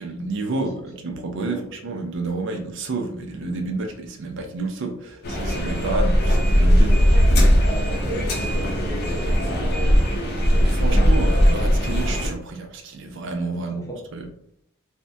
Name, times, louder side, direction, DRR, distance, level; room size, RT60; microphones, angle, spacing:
voice 1, 0.0-7.0 10.6-13.9 14.1-14.3, right 3 dB, 60° right, 3 dB, 0.4 m, -30 dB
sound 1, 5.2-12.3, equal, 50° left, 0.6 m, -19 dB
voice 2, 7.6-10.5 13.5-14.0, equal, 15° left, -3 dB, 0.8 m, -36 dB
3.4 x 2.1 x 2.6 m, 0.68 s
head